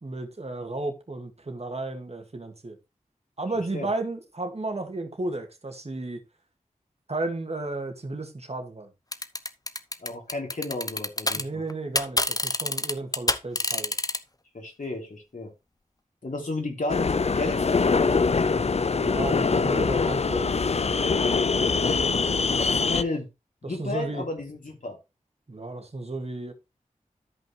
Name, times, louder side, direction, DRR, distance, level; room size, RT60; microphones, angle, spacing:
voice 1, 0.0-2.8 3.4-6.2 7.1-8.9 11.3-13.9 18.9-21.1 22.9-23.1 23.6-24.2 25.5-26.5, right 2 dB, 50° right, 2.1 m, -33 dB
sound 1, 9.1-11.4 11.7-14.2, left 2 dB, 25° left, 0.9 m, -26 dB
voice 2, 10.0-11.6 14.5-15.5 16.2-18.6 22.5-23.3 23.7-25.0, left 2 dB, 70° left, 3.1 m, -33 dB
sound 2, 16.9-23.0, left 4 dB, 50° left, 0.5 m, -23 dB
13.0 x 5.5 x 3.3 m
wide cardioid pair, 45°, 14 cm